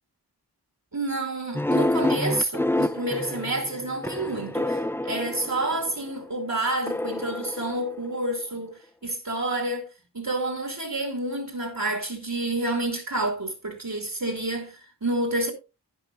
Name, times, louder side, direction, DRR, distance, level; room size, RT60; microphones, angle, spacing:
voice 1, 0.9-9.9 10.1-15.5, right 2 dB, 55° right, 2.5 m, -29 dB
sound 1, 1.5-6.1 6.9-8.4, left 1 dB, 5° left, 0.5 m, -28 dB
11.5 x 10.0 x 2.6 m
wide cardioid pair, 40°, 40 cm